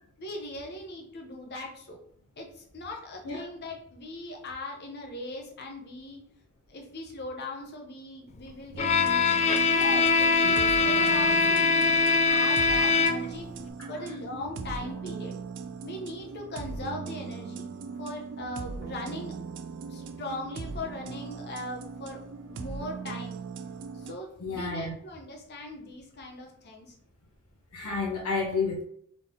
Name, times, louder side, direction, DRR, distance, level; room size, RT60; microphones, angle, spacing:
voice 1, 0.2-2.0 2.4-6.2 6.7-9.4 9.7-13.5 13.9-15.4 15.8-17.7 18.0-19.3 19.9-22.2 22.4-23.4 23.9-26.9, left 1 dB, 50° left, 1 dB, 1.0 m, -39 dB
sound 1, 8.7-24.2, right 5 dB, 55° right, 0.4 m, -39 dB
Bowed string instrument, 8.8-13.5, left 4 dB, 30° left, 0.4 m, -23 dB
voice 2, 24.4-24.9 27.7-28.8, left 4 dB, 90° left, -2 dB, 1.2 m, -30 dB
3.8 x 3.6 x 3.7 m, 0.66 s
head